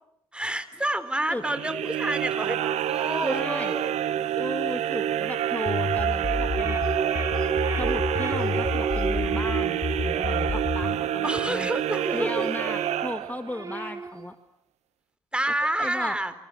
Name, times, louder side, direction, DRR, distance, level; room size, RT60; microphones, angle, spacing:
voice 1, 0.3-3.9 11.2-12.5 15.3-16.3, right 1 dB, 10° right, 13 dB, 3.8 m, -29 dB
sound 1, 1.4-13.7, right 11 dB, 65° right, 1.3 m, -28 dB
voice 2, 3.2-3.8 4.4-6.8 7.8-11.7 12.1-14.4 15.8-16.2, left 1 dB, 15° left, 8 dB, 1.9 m, -35 dB
sound 2, 5.7-11.0, left 4 dB, 35° left, 1.7 m, -30 dB
sound 3, 6.5-11.2 11.6-14.3, right 3 dB, 25° right, 3.3 m, -35 dB
28.5 x 28.0 x 7.4 m, 0.77 s
hypercardioid pair, 45°, 12 cm